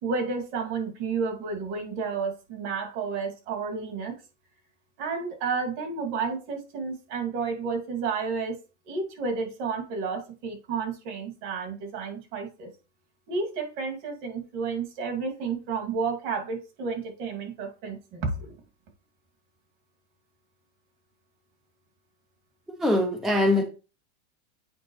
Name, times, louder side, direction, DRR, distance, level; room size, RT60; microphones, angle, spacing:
voice 1, 0.0-4.2 5.0-8.6 8.9-12.7 13.3-18.6, right 5 dB, 55° right, 2.4 m, -31 dB
voice 2, 22.8-23.6, left 1 dB, ahead, 0.5 m, -22 dB
8.6 x 5.0 x 3.1 m
supercardioid pair, 150°, 35 cm